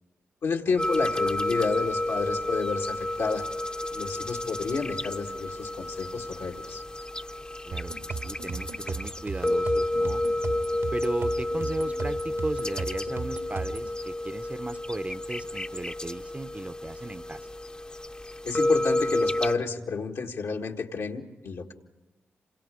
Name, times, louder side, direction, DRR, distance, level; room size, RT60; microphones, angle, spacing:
voice 1, 0.4-3.4 3.9-6.8 18.4-21.7, left 4 dB, 80° left, 1 dB, 1.9 m, -30 dB
sound 1, 0.8-19.6, left 1 dB, 20° left, 0.7 m, -30 dB
voice 2, 7.6-10.2 10.9-17.5, right 2 dB, 30° right, 12 dB, 0.8 m, -36 dB
sound 2, 7.7-13.9, right 4 dB, 75° right, 1.8 m, -37 dB
27.5 x 26.5 x 5.1 m, 1.2 s
supercardioid pair, 45°, 5 cm